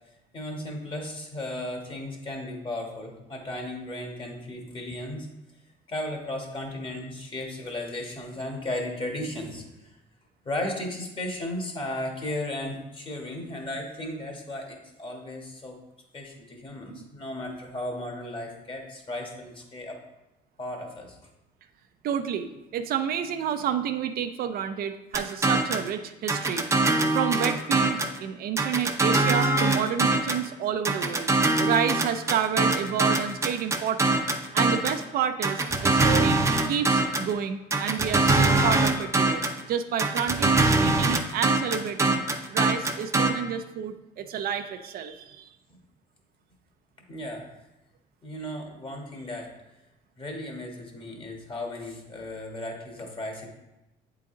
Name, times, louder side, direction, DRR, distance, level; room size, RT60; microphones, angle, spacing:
voice 1, 0.3-5.3 5.9-9.9 10.4-15.8 16.1-20.0 20.6-21.2 47.1-47.6 48.2-49.5 50.2-53.5, left 1 dB, 30° left, 1 dB, 1.5 m, -35 dB
voice 2, 22.0-26.7 27.1-31.3 31.6-34.2 34.5-35.6 35.9-42.2 42.5-45.5, right 8 dB, 60° right, 8 dB, 0.5 m, -30 dB
sound 1, 25.1-25.9 26.3-28.2 28.6-30.5 30.8-35.0 35.4-37.3 37.7-39.6 40.0-43.3, right 2 dB, 15° right, 0.6 m, -23 dB
8.2 x 3.9 x 3.8 m, 0.96 s
cardioid pair, 110°, 17 cm